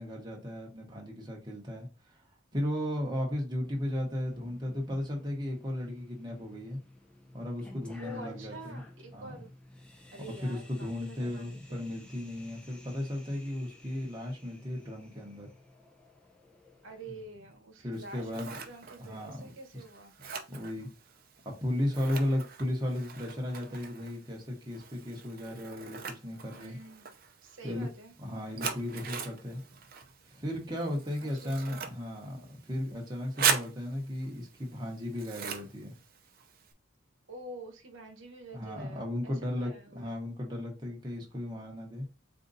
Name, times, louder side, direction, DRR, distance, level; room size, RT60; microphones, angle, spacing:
voice 1, 0.0-2.2 2.5-6.8 7.3-8.8 9.1-9.4 10.2-15.5 17.1-17.2 17.8-18.6 19.0-19.8 20.5-20.9 21.4-26.8 27.6-27.9 28.2-29.6 30.2-36.0 38.5-42.1, left 1 dB, 20° right, 1.0 m, -35 dB
sound 1, 3.6-17.2, left 1 dB, 5° left, 0.6 m, -52 dB
voice 2, 8.0-9.5 10.1-11.8 16.8-20.1 26.6-27.1 27.4-28.1 31.2-31.9 37.3-40.1, right 1 dB, 70° right, 1.0 m, -47 dB
Scissors, 17.9-36.7, right 6 dB, 45° right, 0.6 m, -40 dB
4.4 x 2.6 x 3.9 m
head